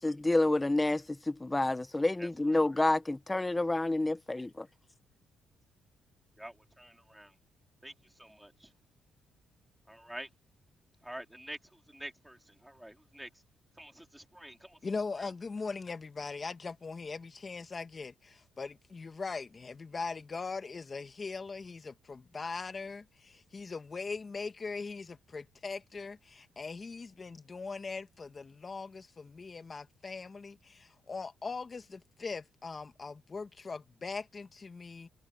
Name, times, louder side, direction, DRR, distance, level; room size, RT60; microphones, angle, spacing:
voice 1, 0.0-4.5, left 2 dB, 15° left, 1.3 m, -29 dB
voice 2, 2.2-2.6 6.4-7.3 7.8-8.7 9.9-10.3 11.0-13.3 13.7-14.8 15.2-15.3, right 1 dB, 5° right, 4.3 m, -48 dB
voice 3, 14.8-35.1, left 4 dB, 35° left, 1.9 m, -40 dB
cardioid pair, 90°, 0 cm